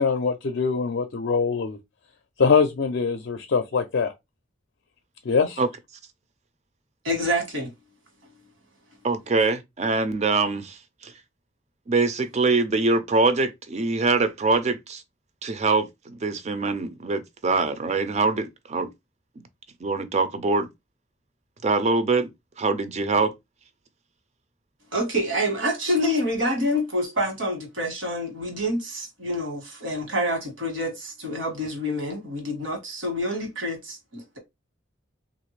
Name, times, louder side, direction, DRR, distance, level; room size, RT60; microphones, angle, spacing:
voice 1, 0.0-1.8 2.4-4.1 5.3-5.6, left 5 dB, 60° left, 0.4 m, -23 dB
voice 2, 7.0-7.7 24.9-34.4, equal, 70° right, 1.4 m, -27 dB
voice 3, 9.0-11.1 11.9-15.0 15.4-18.9 19.8-20.7 21.6-22.3 22.6-23.3, right 3 dB, 35° right, 0.5 m, -24 dB
3.1 x 2.5 x 3.1 m
head